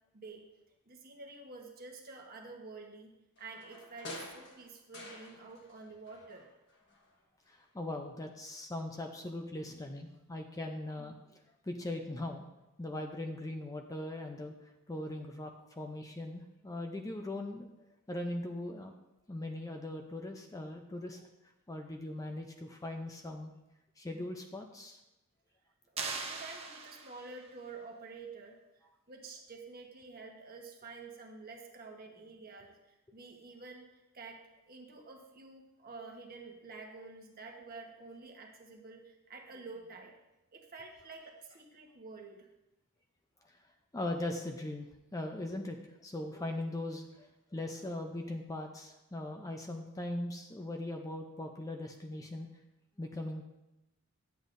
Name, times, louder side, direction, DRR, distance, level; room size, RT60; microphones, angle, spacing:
voice 1, 0.8-3.1 3.4-6.5 25.9-28.6 29.1-32.8 33.1-33.9 34.1-34.4 34.7-40.1 40.5-42.5, right 3 dB, 40° right, 2 dB, 1.2 m, -49 dB
sound 1, 3.4-5.8 6.1-7.1 7.5-7.6, left 2 dB, 50° left, 1.5 m, -49 dB
voice 2, 7.5-11.1 11.7-12.5 12.8-14.5 14.9-17.7 18.1-18.9 19.3-21.2 21.7-23.5 24.0-25.0 43.9-52.5 53.0-53.5, left 1 dB, 15° left, 3 dB, 0.5 m, -40 dB
sound 2, 26.0-27.5, right 4 dB, 25° right, 0.8 m, -40 dB
11.0 x 8.1 x 2.6 m, 0.94 s
head